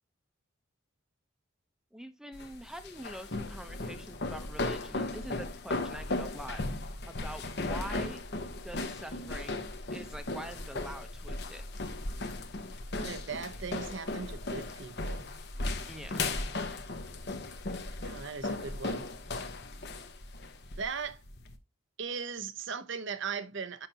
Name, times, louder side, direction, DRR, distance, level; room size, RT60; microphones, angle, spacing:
voice 1, 1.9-6.6 7.1-8.2 8.6-11.6 15.9-16.3, equal, 5° right, 0.8 m, -45 dB
sound 1, 2.3-21.6, left 2 dB, 50° left, 1.0 m, -37 dB
voice 2, 13.0-15.3 18.0-19.1 20.8-21.2 22.0-23.9, right 5 dB, 60° right, 0.8 m, -38 dB
9.1 x 5.9 x 2.9 m
head